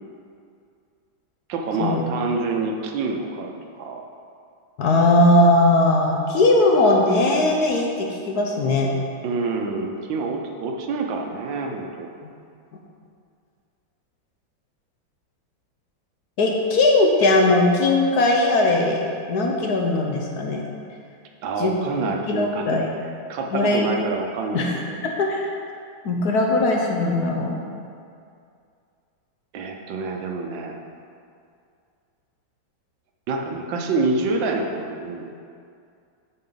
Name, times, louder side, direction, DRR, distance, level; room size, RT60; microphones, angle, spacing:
voice 1, 1.5-4.0 9.2-12.1 21.4-22.8 23.3-25.0 29.5-30.8 33.3-35.3, right 3 dB, 75° right, 2 dB, 1.5 m, -27 dB
voice 2, 4.8-8.9 16.4-19.0 19.3-20.6 21.6-21.7 22.3-22.9 23.5-23.9 24.5-25.5 26.0-27.6, left 2 dB, 60° left, 0 dB, 1.2 m, -19 dB
8.4 x 6.5 x 3.9 m, 2.4 s
omnidirectional pair, 2.1 m